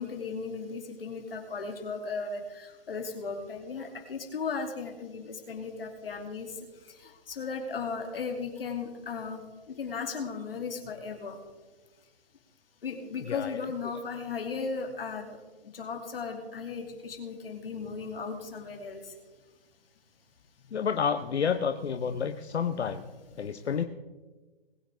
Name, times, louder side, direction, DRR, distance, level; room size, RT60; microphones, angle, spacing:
voice 1, 0.0-6.5 7.3-9.4 9.7-11.4 12.8-15.4 15.7-19.0 22.1-22.5 22.8-22.9, left 5 dB, 60° left, 4 dB, 2.6 m, -36 dB
voice 2, 13.3-13.7 20.7-23.0 23.4-23.8, left 7 dB, 85° left, 8 dB, 0.9 m, -29 dB
21.0 x 9.2 x 3.5 m, 1.3 s
hypercardioid pair, 165°, 32 cm